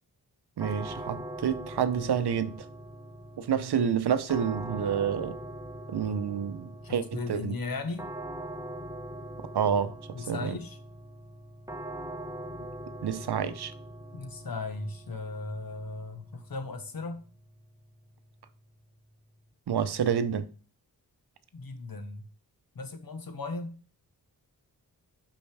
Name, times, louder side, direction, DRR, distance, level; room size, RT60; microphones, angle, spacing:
sound 1, 0.6-19.5, right 1 dB, 10° right, 0.9 m, -43 dB
voice 1, 0.6-2.7 3.4-5.4 5.9-7.5 9.5-9.9 10.3-10.5 13.0-13.7 19.7-20.5, right 7 dB, 70° right, 0.7 m, -28 dB
voice 2, 6.8-8.1 10.1-10.8 14.1-17.2 21.5-22.3 22.7-23.8, left 3 dB, 55° left, 1.2 m, -37 dB
5.3 x 5.3 x 3.4 m
cardioid pair, 50°, 40 cm